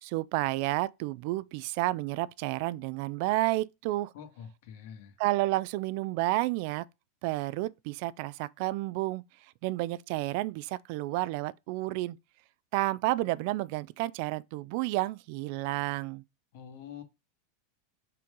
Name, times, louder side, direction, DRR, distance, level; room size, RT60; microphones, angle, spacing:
voice 1, 0.0-4.1 5.2-6.9 7.2-9.2 9.6-12.2 12.7-16.2, right 18 dB, 60° right, 0.4 m, -31 dB
voice 2, 4.1-5.2 16.5-17.0, left 8 dB, 70° left, 2.2 m, -46 dB
6.0 x 4.5 x 3.7 m
hypercardioid pair, 120°, 0 cm